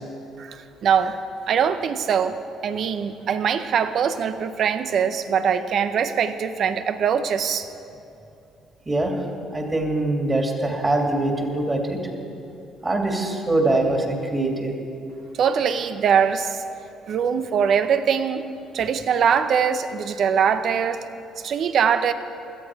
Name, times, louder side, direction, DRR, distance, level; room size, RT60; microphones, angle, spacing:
voice 1, 0.4-7.7 15.4-16.6 17.1-18.4 18.7-21.1 21.4-22.1, right 7 dB, 60° right, 10 dB, 0.8 m, -22 dB
voice 2, 9.5-12.0 12.8-14.7, right 2 dB, 25° right, 1 dB, 2.5 m, -23 dB
17.0 x 12.5 x 4.7 m, 2.7 s
supercardioid pair, 75°, 0 cm